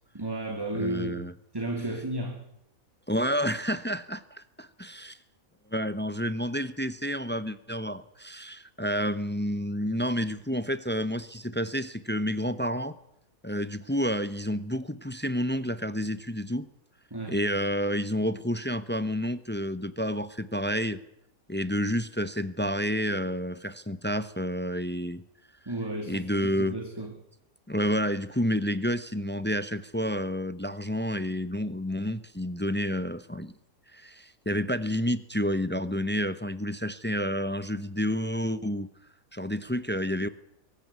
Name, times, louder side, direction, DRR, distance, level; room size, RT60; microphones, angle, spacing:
voice 1, 0.1-1.2 1.5-2.4 17.1-17.4 25.7-27.1, right 2 dB, 15° right, 3 dB, 2.5 m, -33 dB
voice 2, 0.7-1.3 3.1-5.2 5.7-12.9 13.4-16.7 17.3-21.0 21.5-25.2 26.1-26.8 27.7-33.5 33.9-38.9 39.3-40.3, equal, 10° left, 14 dB, 0.6 m, -29 dB
23.0 x 14.5 x 9.5 m, 0.80 s
omnidirectional pair, 1.5 m